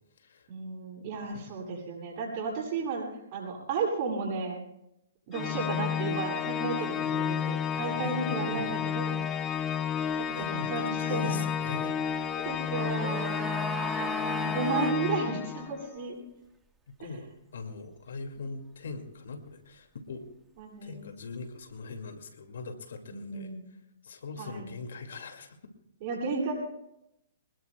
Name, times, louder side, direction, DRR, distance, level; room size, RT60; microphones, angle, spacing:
voice 1, 0.5-4.6 5.3-9.2 10.2-11.4 12.4-13.5 14.4-16.2 17.0-17.1 20.6-21.0 23.1-23.7 24.4-24.7 26.0-26.5, right 4 dB, 45° right, -1 dB, 7.9 m, -33 dB
Organ, 5.3-15.9, left 8 dB, 25° left, 0.5 m, -31 dB
voice 2, 7.1-8.8 10.2-12.0 13.8-14.1 16.9-20.3 20.8-23.5 24.0-25.6, left 4 dB, 75° left, 6 dB, 2.3 m, -41 dB
sound 1, 12.4-15.0 15.3-15.4, right 2 dB, 10° right, 1.5 m, -36 dB
25.5 x 20.0 x 2.3 m, 0.82 s
hypercardioid pair, 130°, 0 cm